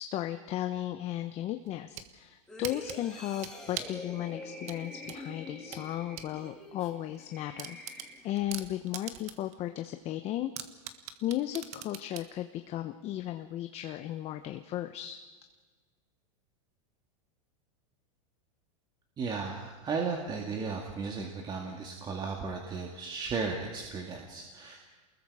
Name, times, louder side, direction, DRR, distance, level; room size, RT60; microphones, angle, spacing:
voice 1, 0.0-10.5 11.2-15.2, left 13 dB, 35° left, 7 dB, 1.0 m, -35 dB
sound 1, 1.7-2.1 2.6-4.0 4.7-6.3 6.7-6.8 7.1-7.2 7.6-9.5 9.9-10.0 10.6-12.3, right 10 dB, 40° right, 1.6 m, -41 dB
sound 2, 2.5-8.6 9.0-9.2, left 1 dB, 5° left, 3.5 m, -46 dB
voice 2, 19.2-24.8, right 4 dB, 25° right, 1 dB, 2.3 m, -35 dB
29.0 x 21.0 x 5.0 m, 1.4 s
supercardioid pair, 140°, 18 cm